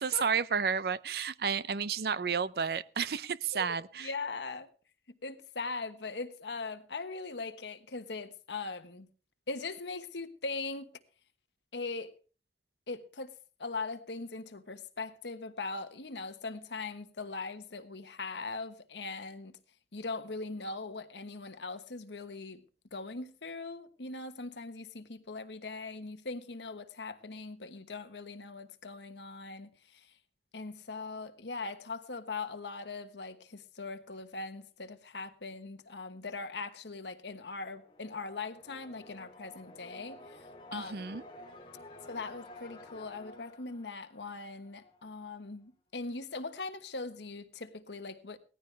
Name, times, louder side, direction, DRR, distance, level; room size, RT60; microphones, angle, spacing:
voice 1, 0.0-4.1 40.7-41.2, right 6 dB, 60° right, 0.5 m, -31 dB
voice 2, 4.0-4.7 5.2-9.1 9.5-10.9 11.7-12.1 12.9-13.3 13.6-19.6 19.9-22.6 22.9-30.1 30.5-40.9 42.1-48.4, left 3 dB, 85° left, 1.3 m, -40 dB
sound 1, 37.3-45.1, left 1 dB, 30° left, 2.5 m, -52 dB
17.5 x 14.0 x 3.4 m
head